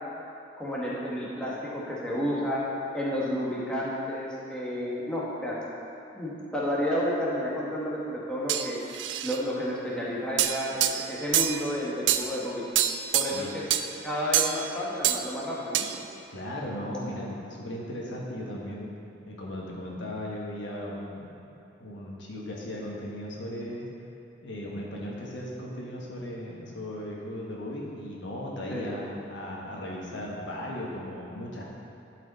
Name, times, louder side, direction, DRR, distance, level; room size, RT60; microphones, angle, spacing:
voice 1, 0.6-2.6 2.9-5.6 6.1-8.8 9.2-12.6 13.1-13.6 14.0-15.9 28.7-28.9, equal, 5° left, -7 dB, 1.2 m, -31 dB
sound 1, 8.5-9.4 10.4-11.6 12.1-12.3 12.7-13.4 13.7-13.9 14.3-14.7 15.0-15.3 15.7-16.0, right 11 dB, 70° right, 0.4 m, -26 dB
voice 2, 16.3-18.9 19.3-21.3 21.8-23.9 24.4-31.6, left 1 dB, 70° left, -3 dB, 1.3 m, -37 dB
11.5 x 4.9 x 4.1 m, 2.8 s
head